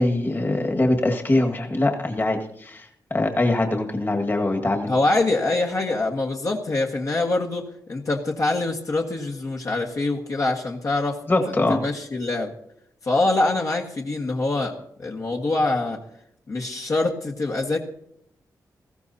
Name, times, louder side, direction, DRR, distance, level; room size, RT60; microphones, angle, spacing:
voice 1, 0.0-4.9 11.3-11.8, left 2 dB, 30° left, 2 dB, 1.8 m, -23 dB
voice 2, 4.9-11.2 11.5-12.5 13.0-16.0 16.5-17.8, left 2 dB, 55° left, -1 dB, 1.6 m, -24 dB
20.0 x 15.0 x 2.8 m, 0.75 s
cardioid pair, 90°, 7 cm